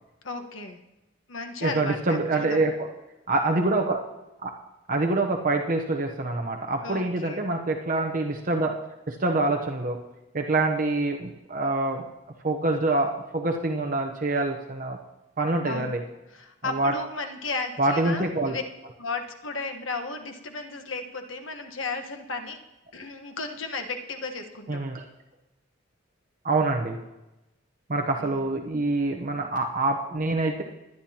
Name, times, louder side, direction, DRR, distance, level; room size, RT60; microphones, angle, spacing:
voice 1, 0.2-0.8 1.3-2.6 6.8-7.5 15.6-16.0 16.3-18.6 19.0-22.6 22.9-24.8 28.2-28.4, left 3 dB, 85° left, 5 dB, 1.4 m, -34 dB
voice 2, 1.6-2.9 3.3-4.0 4.4-4.5 4.9-8.8 9.1-10.0 10.3-12.0 12.4-15.0 15.4-16.0 16.6-17.0 17.8-18.6 18.8-18.9 24.7-25.0 26.4-27.0 27.9-30.6, right 2 dB, 45° right, 3 dB, 0.9 m, -25 dB
21.5 x 10.0 x 2.9 m, 1.0 s
head